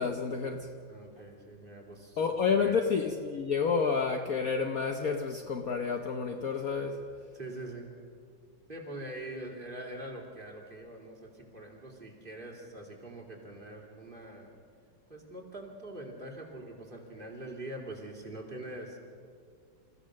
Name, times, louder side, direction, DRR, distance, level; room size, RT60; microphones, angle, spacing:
voice 1, 0.0-0.7 2.2-7.0, left 5 dB, 55° left, 4 dB, 1.2 m, -29 dB
voice 2, 0.9-2.2 2.5-2.8 7.3-7.9 8.7-14.5 15.1-19.0, right 1 dB, 25° right, -1 dB, 3.1 m, -43 dB
28.5 x 15.0 x 6.5 m, 2.2 s
omnidirectional pair, 2.1 m